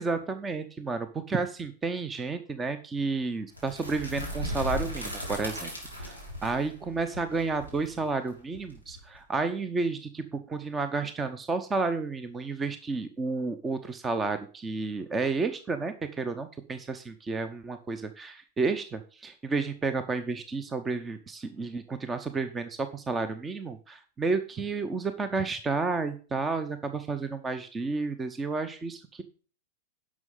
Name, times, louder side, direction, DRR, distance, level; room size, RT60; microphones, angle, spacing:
voice 1, 0.0-5.7 6.0-29.2, right 4 dB, 15° right, 10 dB, 0.8 m, -31 dB
sound 1, 3.5-9.4, equal, 85° right, 3.7 m, -37 dB
11.0 x 6.3 x 5.4 m, 0.38 s
figure-of-eight pair, 95°, 0 cm